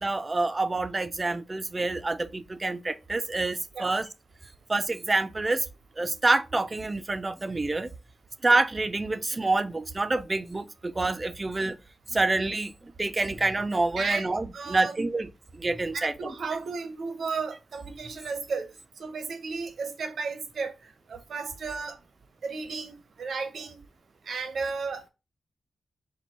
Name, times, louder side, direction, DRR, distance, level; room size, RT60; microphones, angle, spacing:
voice 1, 0.0-4.1 4.7-5.7 6.0-7.9 8.4-11.8 12.1-15.3 15.5-16.1, right 2 dB, 30° right, 0.5 m, -27 dB
voice 2, 14.0-14.3 14.5-15.0 15.9-18.7 19.0-22.0 22.4-23.8 24.3-25.1, right 4 dB, 80° right, 0.8 m, -34 dB
4.4 x 2.2 x 4.2 m
cardioid pair, 65°, 0 cm